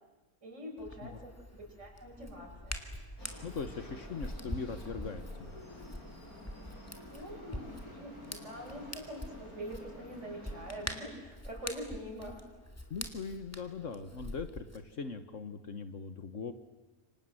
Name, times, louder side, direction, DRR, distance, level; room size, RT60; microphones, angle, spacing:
voice 1, 0.4-2.8 7.1-12.4, equal, 55° right, 0 dB, 6.5 m, -44 dB
Hands, 0.8-14.8, left 1 dB, 10° left, 2.3 m, -45 dB
sound 1, 3.2-10.9, left 1 dB, 90° left, 6.7 m, -51 dB
voice 2, 3.4-5.6 12.9-16.5, left 5 dB, 60° left, 10 dB, 1.6 m, -40 dB
28.5 x 25.0 x 7.8 m, 1.1 s
omnidirectional pair, 1.5 m